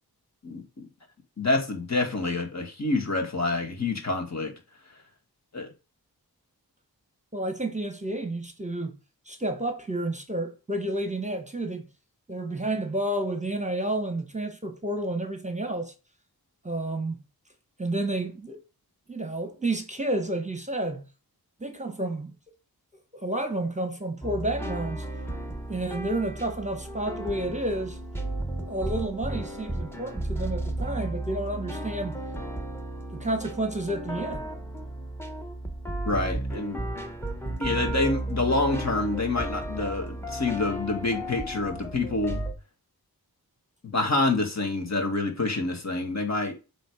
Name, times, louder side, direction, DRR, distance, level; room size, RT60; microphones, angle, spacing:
voice 1, 0.4-0.9 1.4-4.5 5.5-5.7 36.1-36.8 37.6-42.4 43.8-46.5, left 2 dB, 45° left, 1.8 m, -27 dB
voice 2, 7.3-9.0 9.3-11.8 12.3-15.9 16.6-17.2 17.8-18.6 19.1-21.0 21.6-22.3 23.1-25.1 25.7-28.0 28.6-32.2 33.1-34.5, right 1 dB, 20° right, 1.1 m, -30 dB
sound 1, 24.2-42.5, right 1 dB, 5° left, 1.1 m, -34 dB
7.7 x 3.4 x 4.9 m
wide cardioid pair, 80°, 38 cm